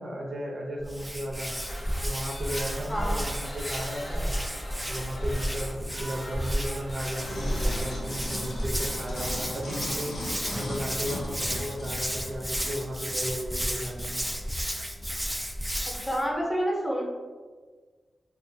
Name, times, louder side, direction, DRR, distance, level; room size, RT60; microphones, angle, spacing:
voice 1, 0.0-1.5 2.0-4.4 4.9-10.1 10.5-14.2, equal, 60° right, -1 dB, 0.6 m, -35 dB
Hands, 0.8-16.2, equal, 5° right, 0.3 m, -32 dB
sound 1, 1.4-14.6, left 1 dB, 50° left, 0.7 m, -44 dB
voice 2, 2.8-3.3 16.0-17.0, equal, 10° left, -3 dB, 0.7 m, -28 dB
sound 2, 7.2-12.7 13.3-13.4, left 1 dB, 85° left, 0.5 m, -37 dB
2.6 x 2.4 x 2.6 m, 1.5 s
cardioid pair, 75°, 0 cm